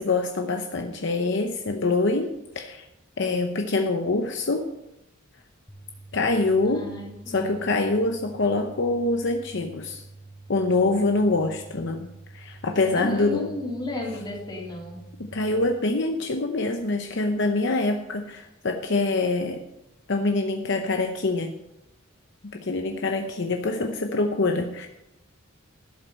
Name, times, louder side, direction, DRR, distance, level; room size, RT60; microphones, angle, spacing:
voice 1, 0.0-2.8 3.2-4.7 6.1-6.9 7.3-10.0 10.5-13.5 15.3-19.6 20.1-21.6 22.5-24.9, left 3 dB, 60° left, 5 dB, 0.8 m, -25 dB
sound 1, 5.7-15.7, right 2 dB, 5° left, 0.8 m, -47 dB
voice 2, 6.7-7.7 12.9-15.0, left 1 dB, 20° left, -3 dB, 3.2 m, -34 dB
12.5 x 7.6 x 5.4 m, 0.86 s
head